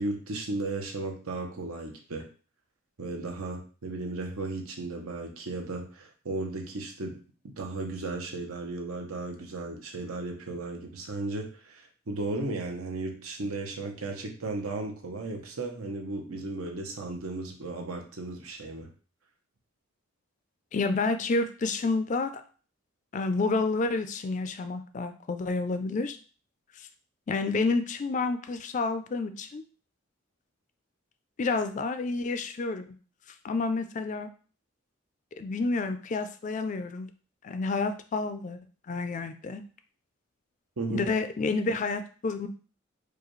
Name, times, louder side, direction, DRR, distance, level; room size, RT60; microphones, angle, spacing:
voice 1, 0.0-2.2 3.0-7.2 7.4-18.9 40.8-41.1, right 2 dB, 85° right, 2 dB, 0.8 m, -35 dB
voice 2, 20.7-22.3 23.1-26.2 27.3-29.6 31.4-33.0 33.4-34.3 35.4-37.1 37.4-38.6 38.9-39.6 40.9-42.5, left 3 dB, 35° left, 9 dB, 0.3 m, -29 dB
4.8 x 2.3 x 3.1 m, 0.39 s
head